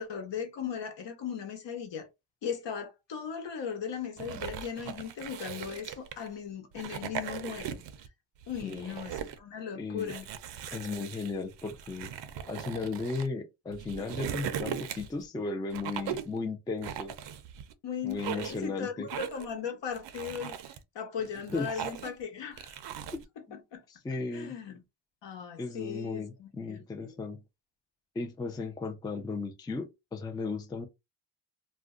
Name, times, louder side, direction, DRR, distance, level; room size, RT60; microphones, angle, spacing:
voice 1, 0.0-2.1 2.4-7.8 8.5-10.3 17.8-22.8 23.5-23.8 24.3-24.8 25.2-27.2, left 7 dB, 65° left, 1.1 m, -38 dB
sound 1, 4.2-6.3 6.7-8.1 8.4-9.4 10.0-13.3 13.7-15.2 15.7-16.4 16.8-17.7 18.1-18.7 19.1-19.5 19.9-20.8 21.3-22.2 22.6-23.2, right 9 dB, 65° right, 0.6 m, -39 dB
voice 2, 8.6-8.9 9.7-10.1 10.7-12.1 12.5-17.1 18.0-19.1 21.5-21.8 23.1-23.2 23.5-23.6 23.9-24.5 25.6-27.4 28.2-30.9, left 3 dB, 10° left, 0.3 m, -35 dB
2.5 x 2.1 x 3.6 m
cardioid pair, 120°, 47 cm